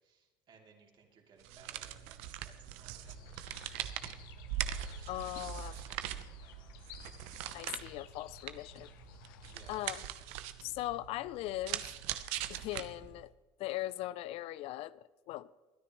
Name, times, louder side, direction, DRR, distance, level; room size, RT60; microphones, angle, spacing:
voice 1, 0.0-6.9 9.1-10.0, right 5 dB, 45° right, 3.0 m, -63 dB
sound 1, 1.4-13.3, right 12 dB, 75° right, 0.9 m, -42 dB
sound 2, 3.0-9.9, left 8 dB, 85° left, 0.9 m, -55 dB
voice 2, 5.1-5.8 7.5-8.9 9.7-10.1 10.6-11.8 12.5-13.3 13.6-15.5, left 15 dB, 65° left, 0.4 m, -39 dB
23.0 x 9.9 x 3.1 m
supercardioid pair, 85°, 11 cm